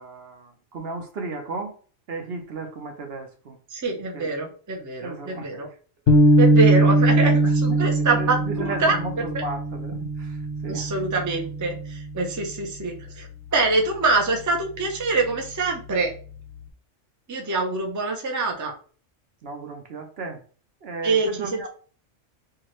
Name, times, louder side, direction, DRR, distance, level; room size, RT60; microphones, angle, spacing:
voice 1, 0.0-1.7 2.1-3.6 4.1-4.3 5.0-5.5 6.1-6.2 7.4-10.9 19.4-20.4 20.8-21.7, right 3 dB, 60° right, 0.9 m, -34 dB
voice 2, 3.7-5.7 6.4-9.0 10.7-16.1 17.3-18.7 21.0-21.7, right 3 dB, 20° right, 0.5 m, -25 dB
sound 1, 6.1-12.5, right 1 dB, 60° left, 0.8 m, -21 dB
4.6 x 2.4 x 3.0 m
omnidirectional pair, 1.3 m